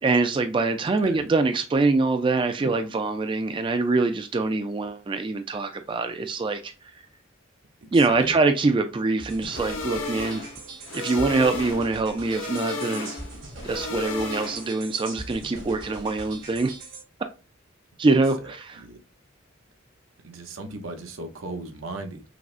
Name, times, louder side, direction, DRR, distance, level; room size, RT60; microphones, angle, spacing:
voice 1, 0.0-7.0 7.9-10.5 10.9-13.1 13.6-16.7 18.0-18.8, right 3 dB, 25° right, 0.3 m, -24 dB
voice 2, 7.8-8.3 18.4-19.0 20.2-22.2, right 2 dB, 85° right, 0.8 m, -37 dB
sound 1, 9.2-17.0, right 2 dB, 70° right, 1.5 m, -41 dB
sound 2, 9.5-14.9, left 3 dB, 75° left, 0.8 m, -34 dB
5.9 x 2.1 x 2.4 m
head